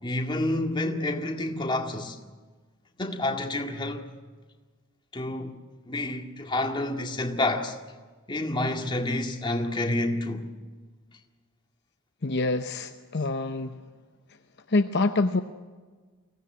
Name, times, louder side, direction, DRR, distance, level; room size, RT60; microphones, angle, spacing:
voice 1, 0.0-2.2 3.0-4.1 5.1-5.5 5.9-7.8 8.3-10.5, left 2 dB, 20° left, 2.0 m, -29 dB
voice 2, 12.2-13.8 14.7-15.4, left 2 dB, 50° left, 0.8 m, -26 dB
24.0 x 16.5 x 9.6 m
head